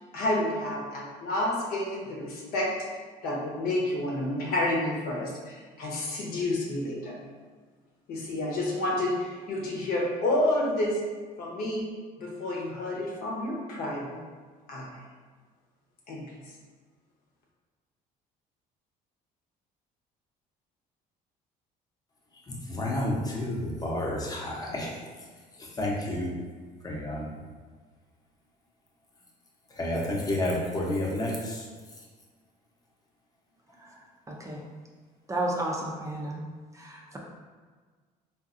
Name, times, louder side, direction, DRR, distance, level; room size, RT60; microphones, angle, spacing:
voice 1, 0.1-7.2 8.1-11.0 11.4-11.9 12.2-14.2 14.7-15.0 16.1-16.2, left 1 dB, 70° left, -2 dB, 0.9 m, -30 dB
voice 2, 22.7-24.9 25.6-26.3 26.8-27.3 29.7-31.7, left 1 dB, 25° left, -3 dB, 0.8 m, -30 dB
voice 3, 34.3-34.6 35.3-36.4 36.7-37.0, right 1 dB, 20° right, -2 dB, 0.5 m, -32 dB
3.9 x 2.5 x 2.5 m, 1.5 s
cardioid pair, 110°, 16 cm